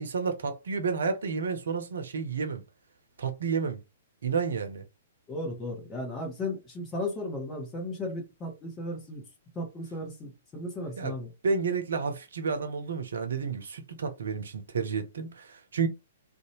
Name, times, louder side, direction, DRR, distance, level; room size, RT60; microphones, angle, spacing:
voice 1, 0.0-2.6 3.2-3.8 4.2-4.8 11.0-11.2 11.4-15.9, right 5 dB, 60° right, 0.6 m, -30 dB
voice 2, 5.3-9.2 9.5-11.3, left 1 dB, 15° left, 1.1 m, -35 dB
2.6 x 2.2 x 3.0 m
figure-of-eight pair, 115°, 0 cm